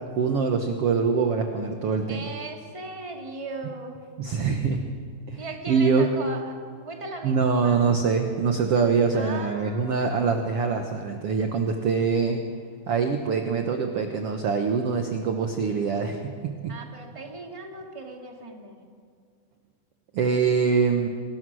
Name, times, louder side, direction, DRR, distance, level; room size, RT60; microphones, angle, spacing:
voice 1, 0.1-2.3 4.2-4.8 5.3-6.1 7.2-12.4 12.9-16.7 20.1-21.1, right 5 dB, 70° right, 4 dB, 1.4 m, -24 dB
voice 2, 2.1-3.9 5.4-6.5 6.8-7.8 9.1-10.1 16.7-18.8, right 3 dB, 10° right, 1 dB, 1.7 m, -38 dB
26.5 x 20.5 x 6.3 m, 2.2 s
omnidirectional pair, 4.5 m